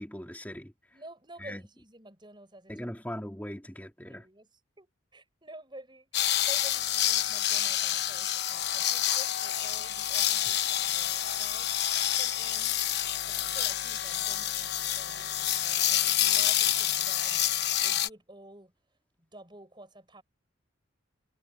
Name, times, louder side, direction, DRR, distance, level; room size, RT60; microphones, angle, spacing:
voice 1, 0.0-0.7 1.4-1.6 2.7-4.2, equal, 10° left, 3.0 m, -39 dB
voice 2, 0.9-2.9 4.1-12.8 13.2-18.7 19.2-20.2, right 1 dB, 25° right, 7.4 m, -51 dB
sound 1, 6.1-18.1, left 12 dB, 55° left, 1.0 m, -28 dB
head